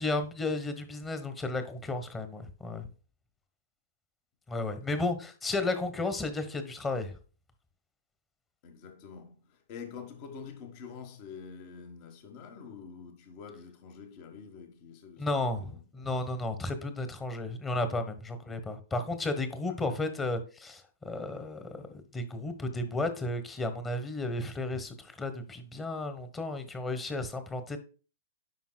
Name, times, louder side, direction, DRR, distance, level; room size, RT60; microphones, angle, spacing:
voice 1, 0.0-2.9 4.5-7.1 15.2-27.8, left 2 dB, 15° left, 1.2 m, -33 dB
voice 2, 8.6-16.1 18.5-18.6 19.7-19.9, left 6 dB, 45° left, 1.4 m, -47 dB
9.3 x 5.7 x 2.3 m
hypercardioid pair, 125°, 0 cm